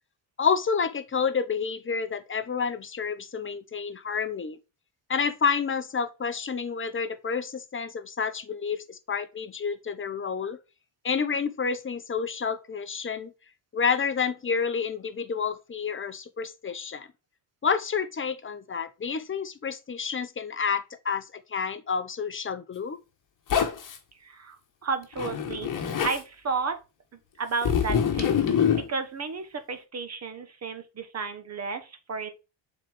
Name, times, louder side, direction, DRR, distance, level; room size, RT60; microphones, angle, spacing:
voice 1, 0.4-4.6 5.1-10.6 11.0-13.3 13.7-17.1 17.6-23.0, left 6 dB, 25° left, 0.7 m, -29 dB
Zipper (clothing), 23.5-24.0 25.1-26.2 27.6-28.9, left 8 dB, 45° left, 1.3 m, -25 dB
voice 2, 24.2-26.8 27.4-28.4 28.8-32.3, right 4 dB, 35° right, 1.2 m, -33 dB
7.3 x 4.0 x 3.4 m
cardioid pair, 110°, 47 cm